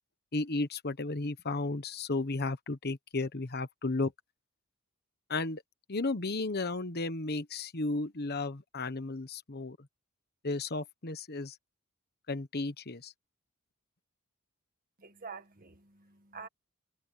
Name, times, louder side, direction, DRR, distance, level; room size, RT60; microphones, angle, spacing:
voice 1, 0.3-4.1 5.3-5.6 5.9-9.8 10.4-11.6 12.3-13.1, left 3 dB, 45° left, 1.2 m, -34 dB
voice 2, 15.0-16.5, right 5 dB, 40° right, 1.9 m, -47 dB
head